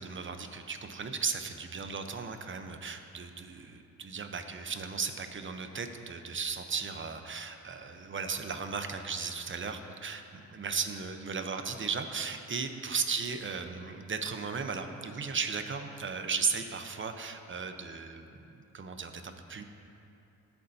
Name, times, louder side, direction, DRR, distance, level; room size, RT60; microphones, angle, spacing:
voice 1, 0.0-18.3 18.7-19.6, right 5 dB, 40° right, 7 dB, 0.9 m, -36 dB
18.0 x 6.9 x 2.8 m, 2.7 s
cardioid pair, 65°, 30 cm